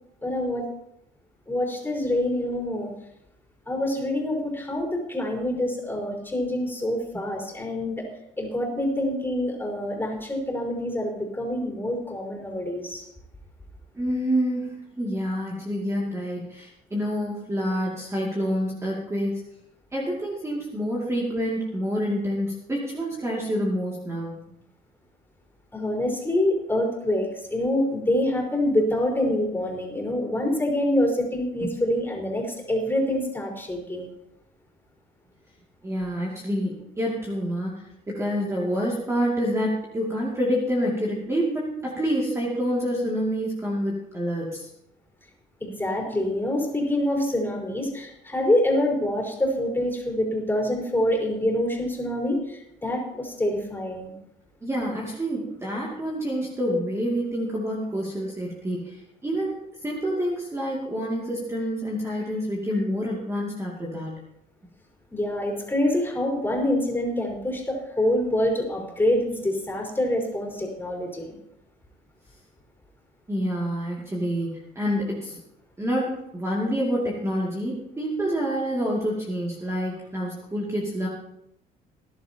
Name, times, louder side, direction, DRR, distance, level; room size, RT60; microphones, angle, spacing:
voice 1, 0.2-0.7 1.5-2.9 3.7-8.0 8.4-13.1 25.7-34.1 45.6-54.1 65.1-71.3, left 1 dB, 10° left, -1 dB, 4.7 m, -26 dB
voice 2, 13.9-14.7 15.0-19.4 19.9-24.4 31.6-31.7 35.8-44.7 54.6-64.1 73.3-75.4 75.8-81.1, equal, 15° right, -4 dB, 2.6 m, -27 dB
19.5 x 11.5 x 3.0 m, 0.82 s
cardioid pair, 110°, 17 cm